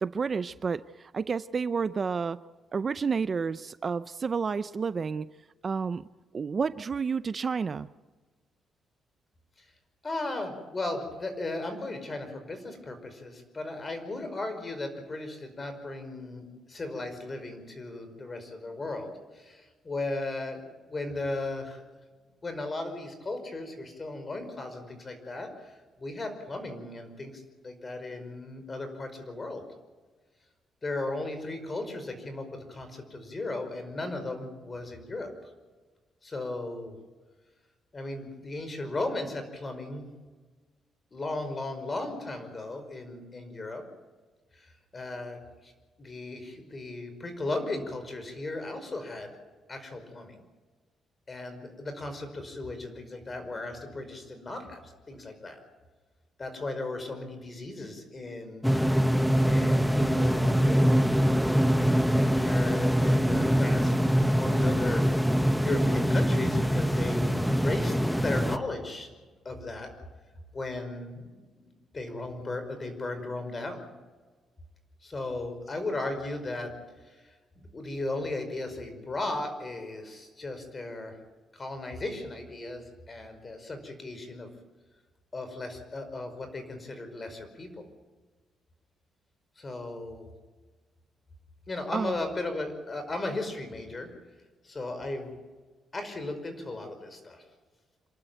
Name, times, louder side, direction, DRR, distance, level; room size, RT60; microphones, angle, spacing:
voice 1, 0.0-2.4 2.7-5.3 5.6-6.0 6.3-7.9 91.9-92.1, right 5 dB, 40° right, 15 dB, 0.5 m, -30 dB
voice 2, 10.0-21.8 22.4-29.6 30.8-35.3 36.2-36.9 37.9-40.1 41.1-43.8 44.5-45.7 46.0-49.3 49.7-50.4 51.3-55.6 56.4-58.7 59.5-61.0 62.1-65.3 65.6-69.1 69.5-69.9 70.5-73.9 75.0-76.7 77.0-81.2 81.5-84.5 85.3-87.8 89.6-90.3 91.7-94.1 94.6-95.3 95.9-97.4, left 2 dB, 30° left, 7 dB, 5.3 m, -36 dB
sound 1, 58.6-68.6, equal, ahead, 1.0 m, -24 dB
27.0 x 12.5 x 9.2 m, 1.4 s
cardioid pair, 100°, 0 cm